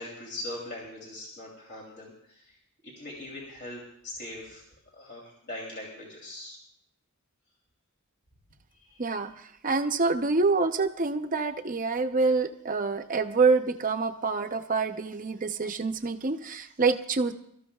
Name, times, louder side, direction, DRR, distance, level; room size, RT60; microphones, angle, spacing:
voice 1, 0.0-2.6 2.8-4.6 4.9-6.6 8.7-9.1, left 1 dB, 50° left, -3 dB, 3.0 m, -41 dB
voice 2, 9.0-9.3 9.6-17.3, right 4 dB, 35° right, 7 dB, 0.7 m, -26 dB
26.5 x 13.5 x 2.3 m, 0.70 s
head